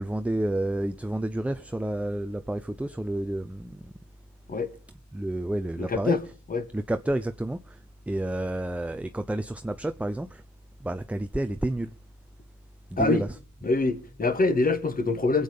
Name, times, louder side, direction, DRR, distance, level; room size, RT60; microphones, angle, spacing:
voice 1, 0.0-3.9 5.1-6.3 6.7-7.8 8.1-10.4 10.8-11.9 12.9-13.4, right 1 dB, 5° right, 0.6 m, -30 dB
voice 2, 5.8-6.2 6.5-6.7 13.0-13.2 13.6-15.4, left 3 dB, 30° left, 2.1 m, -24 dB
22.5 x 8.7 x 5.3 m
cardioid pair, 90°, 30 cm